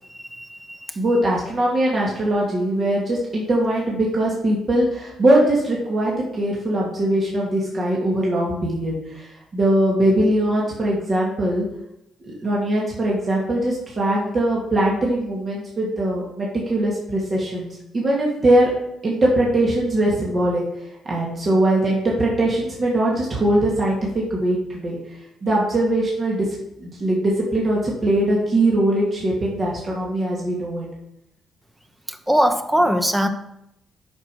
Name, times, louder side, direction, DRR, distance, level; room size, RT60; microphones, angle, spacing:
voice 1, 0.1-1.0 32.1-33.3, equal, 10° right, 8 dB, 1.0 m, -21 dB
voice 2, 1.0-11.7 12.3-17.7 17.9-18.7 19.0-20.6 21.1-25.0 25.4-26.5 26.8-30.9, right 1 dB, 40° right, -4 dB, 2.3 m, -21 dB
8.9 x 5.9 x 4.8 m, 0.83 s
cardioid pair, 90°, 0 cm